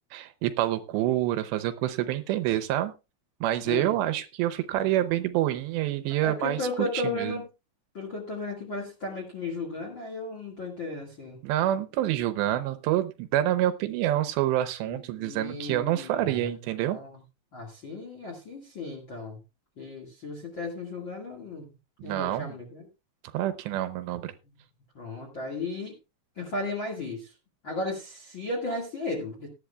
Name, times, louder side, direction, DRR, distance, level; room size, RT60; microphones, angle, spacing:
voice 1, 0.1-2.9 3.4-6.6 6.9-7.3 11.4-17.0 22.0-22.5 23.3-24.3, right 13 dB, 80° right, 10 dB, 2.8 m, -27 dB
voice 2, 6.2-7.5 7.9-11.4 14.8-16.5 16.8-17.2 17.5-19.4 19.8-21.7 22.0-22.8 24.9-25.9 26.4-27.3 27.6-29.5, left 2 dB, 45° left, 0 dB, 1.7 m, -35 dB
18.0 x 11.0 x 2.3 m, 0.28 s
omnidirectional pair, 5.2 m